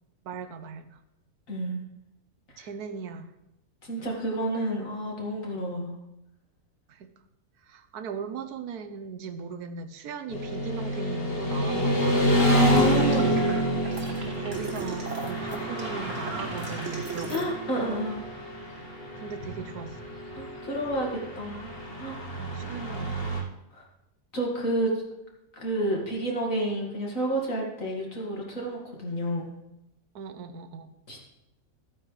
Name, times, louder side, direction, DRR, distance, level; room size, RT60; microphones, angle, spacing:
voice 1, 0.2-1.0 2.6-3.3 6.9-7.1 7.6-12.4 14.2-17.6 19.1-20.0 22.4-23.1 30.1-30.9, right 6 dB, 85° right, 8 dB, 1.3 m, -38 dB
voice 2, 1.5-1.8 2.5-2.7 3.8-5.9 12.5-13.5 17.3-18.2 20.3-21.1 21.4-21.7 22.0-22.2 23.7-23.8 24.3-24.9 25.5-29.5 31.1-31.2, right 1 dB, 60° left, -2 dB, 2.5 m, -30 dB
Motorcycle / Traffic noise roadway noise, 10.3-23.4, equal, 40° left, 1.3 m, -28 dB
sound 1, 12.3-17.4, right 4 dB, 55° right, 1.7 m, -38 dB
13.5 x 9.1 x 3.3 m, 0.88 s
omnidirectional pair, 1.6 m